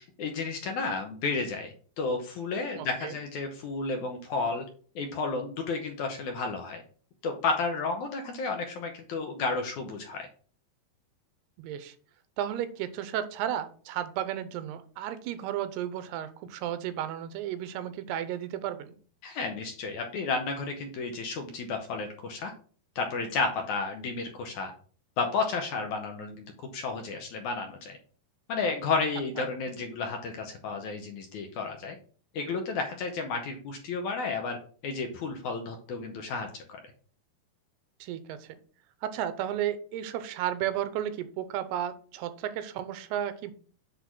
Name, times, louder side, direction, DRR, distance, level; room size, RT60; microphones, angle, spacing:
voice 1, 0.0-4.7 5.0-6.8 7.2-10.3 19.2-22.5 23.0-24.7 25.2-28.0 28.5-32.0 32.3-34.6 34.8-36.8, left 4 dB, 75° left, 4 dB, 1.8 m, -32 dB
voice 2, 2.8-3.1 11.6-12.0 12.4-18.9 38.0-38.6 39.0-43.5, right 11 dB, 85° right, 12 dB, 2.8 m, -33 dB
8.1 x 3.9 x 6.0 m, 0.43 s
omnidirectional pair, 4.6 m